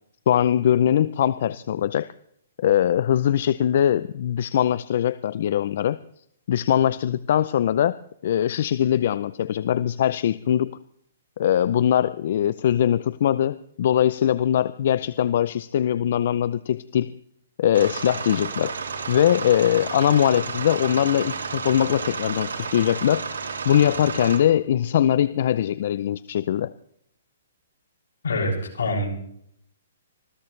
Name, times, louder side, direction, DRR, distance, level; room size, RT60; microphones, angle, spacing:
voice 1, 0.3-2.1 2.6-6.0 6.5-7.9 8.2-10.7 11.4-17.1 17.6-18.7 19.1-23.2 23.6-26.7, left 10 dB, 55° left, 16 dB, 0.5 m, -21 dB
sound 1, 17.7-24.4, right 5 dB, 85° right, 3.3 m, -32 dB
voice 2, 28.2-29.1, left 2 dB, 80° left, -1 dB, 6.8 m, -25 dB
25.0 x 16.0 x 3.3 m, 0.70 s
hypercardioid pair, 150°, 0 cm